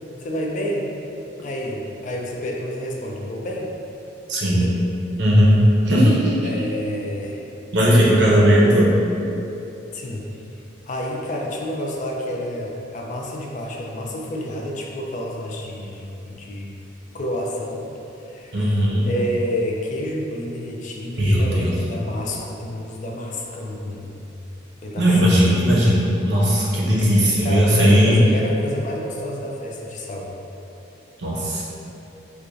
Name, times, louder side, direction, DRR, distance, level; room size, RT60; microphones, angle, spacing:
voice 1, 0.2-0.8 1.4-3.7 4.5-4.8 6.4-7.5 7.9-8.4 9.9-10.2 10.9-16.7 17.1-17.8 18.3-24.2 24.8-25.1 27.4-30.3, equal, 40° left, -1 dB, 0.3 m, -29 dB
voice 2, 4.3-4.7 5.2-5.6 5.8-6.4 7.7-8.9 18.5-19.1 21.2-21.8 25.0-28.2 31.2-31.6, equal, 65° right, -5 dB, 0.7 m, -17 dB
4.6 x 2.2 x 2.5 m, 2.9 s
head